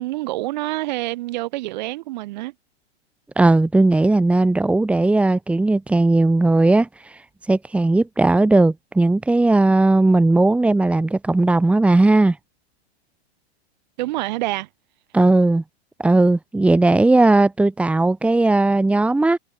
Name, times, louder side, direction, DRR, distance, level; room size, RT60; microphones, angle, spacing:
voice 1, 0.0-2.5 14.0-14.7, right 18 dB, 40° right, 5.2 m, -27 dB
voice 2, 3.4-7.2 7.5-12.4 15.1-15.6 16.0-19.4, right 2 dB, 5° right, 3.3 m, -17 dB
hypercardioid pair, 155°, 33 cm